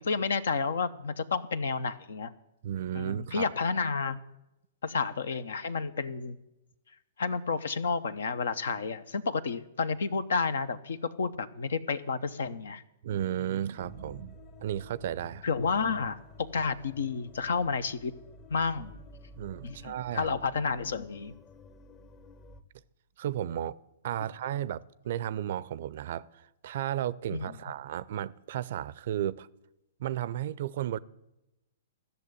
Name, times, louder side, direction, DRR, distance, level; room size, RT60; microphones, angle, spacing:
voice 1, 0.0-2.3 2.9-4.2 4.8-6.4 7.2-12.8 15.4-18.1 18.5-18.9 19.6-21.3 27.3-27.5, left 5 dB, 70° left, 0.8 m, -31 dB
voice 2, 2.6-3.5 13.0-15.5 19.4-20.3 23.2-23.7 24.0-29.5 30.0-31.0, right 11 dB, 55° right, 0.5 m, -34 dB
sound 1, 13.8-22.6, left 2 dB, 30° left, 1.1 m, -51 dB
13.5 x 6.7 x 9.8 m
figure-of-eight pair, 115°, 0 cm